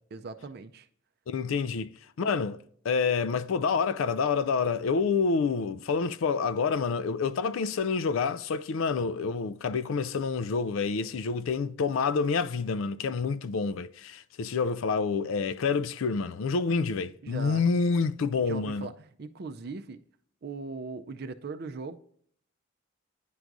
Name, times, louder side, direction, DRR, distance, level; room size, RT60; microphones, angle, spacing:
voice 1, 0.1-0.9 17.2-17.7 18.5-20.0 20.4-22.0, right 4 dB, 50° right, 0.4 m, -39 dB
voice 2, 1.3-1.9 2.2-2.6 2.8-18.9, left 5 dB, 75° left, 0.4 m, -28 dB
10.0 x 4.7 x 2.6 m
head